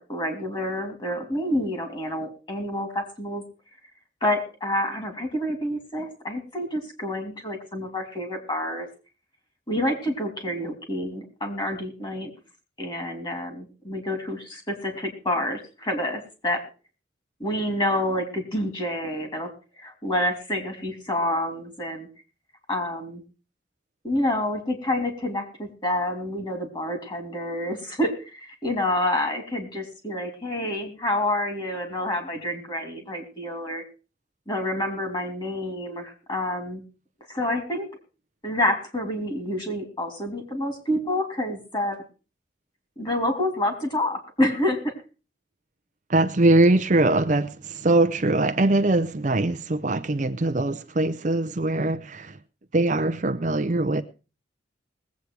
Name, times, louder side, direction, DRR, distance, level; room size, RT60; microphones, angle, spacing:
voice 1, 0.0-3.4 4.2-8.9 9.7-12.3 12.8-16.6 17.4-19.5 19.8-22.1 22.7-23.2 24.0-33.8 34.5-36.8 37.3-37.9 38.4-42.0 43.0-45.0, left 1 dB, 25° left, 5 dB, 3.1 m, -28 dB
voice 2, 46.1-52.4 52.7-54.0, right 2 dB, 40° right, 11 dB, 0.6 m, -22 dB
20.0 x 8.4 x 4.7 m, 0.34 s
head